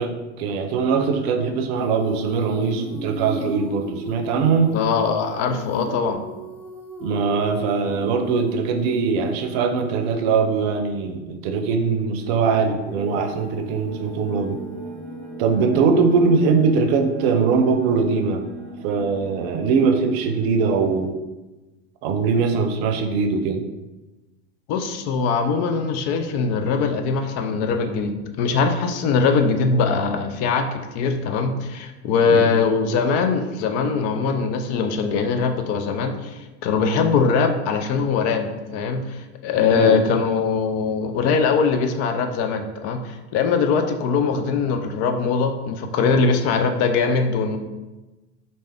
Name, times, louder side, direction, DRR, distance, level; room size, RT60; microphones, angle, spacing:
voice 1, 0.0-4.8 7.0-14.6 15.4-18.4 18.8-21.2 22.0-23.6 32.3-32.6 39.7-40.0, right 5 dB, 60° right, 6 dB, 0.6 m, -21 dB
Female singing, 1.8-10.6 12.8-17.1, right 1 dB, 5° left, 0.7 m, -37 dB
voice 2, 4.7-6.2 24.7-47.6, left 5 dB, 50° left, 6 dB, 0.5 m, -22 dB
sound 1, 11.8-21.0, right 2 dB, 15° right, 1.1 m, -39 dB
3.2 x 2.7 x 3.4 m, 1.1 s
hypercardioid pair, 95°, 34 cm